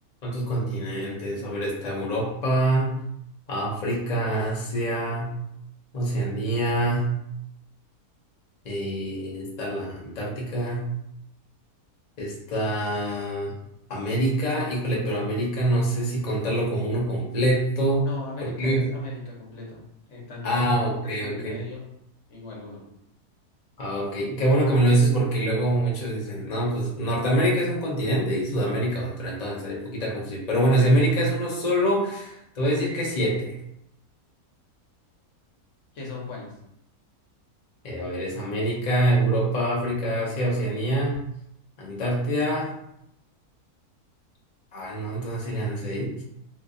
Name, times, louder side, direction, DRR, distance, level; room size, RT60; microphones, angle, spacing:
voice 1, 0.2-2.9 3.5-5.3 5.9-7.1 8.6-10.9 12.2-13.5 13.9-18.0 18.4-18.9 20.4-21.5 23.8-33.6 37.8-41.2 41.8-42.7 44.7-46.1, right 1 dB, 40° left, -4 dB, 0.6 m, -25 dB
voice 2, 18.0-19.8 20.1-21.8 22.3-22.8 35.9-36.5, left 3 dB, 55° left, -3 dB, 1.1 m, -39 dB
2.7 x 2.5 x 3.6 m, 0.78 s
omnidirectional pair, 1.6 m